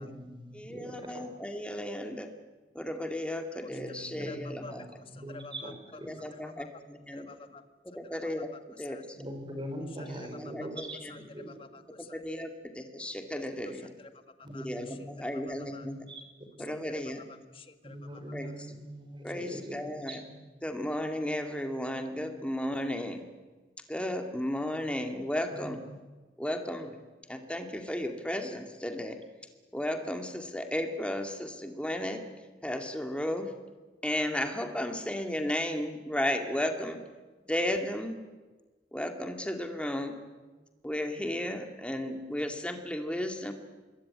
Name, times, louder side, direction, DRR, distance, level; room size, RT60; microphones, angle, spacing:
voice 1, 0.0-1.3 3.7-5.7 6.0-6.1 9.1-11.6 14.4-15.3 15.6-16.2 16.6-16.7 17.8-20.4 25.5-26.0, equal, 25° right, 5 dB, 5.0 m, -42 dB
voice 2, 0.5-2.3 2.7-4.8 6.1-7.3 7.9-8.5 8.8-9.2 10.4-11.2 12.1-13.9 14.5-16.0 16.6-17.2 18.3-18.5 19.2-20.2 20.6-23.2 23.9-25.8 26.4-26.9 27.3-29.2 29.7-32.2 32.6-33.5 34.0-37.0 37.5-38.2 38.9-40.2 40.8-43.5, left 1 dB, 5° left, 5 dB, 2.3 m, -34 dB
voice 3, 3.6-6.0 6.3-6.7 7.1-7.7 8.0-8.4 8.9-9.0 10.0-10.5 11.1-12.5 13.6-14.1 14.4-15.1 15.4-15.9 16.6-18.5, left 3 dB, 30° left, 9 dB, 1.7 m, -50 dB
25.5 x 21.5 x 9.7 m, 1.3 s
head